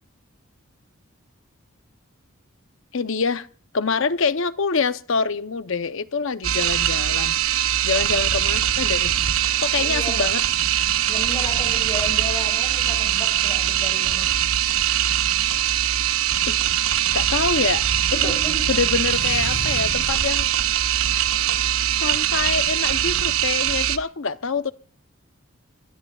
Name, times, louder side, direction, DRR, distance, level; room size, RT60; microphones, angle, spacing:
voice 1, 2.9-3.5 3.7-7.4 7.8-9.1 9.6-10.4 16.5-16.6 17.1-17.9 18.2-18.4 18.7-20.5 22.0-24.7, left 5 dB, 65° left, 0.8 m, -25 dB
sound 1, 6.4-24.0, right 11 dB, 75° right, 0.8 m, -22 dB
voice 2, 9.7-10.3 11.1-14.3 18.1-18.7, left 1 dB, 25° left, 5.0 m, -33 dB
sound 2, 17.3-20.3, left 2 dB, 45° left, 1.1 m, -35 dB
23.0 x 22.0 x 2.4 m
head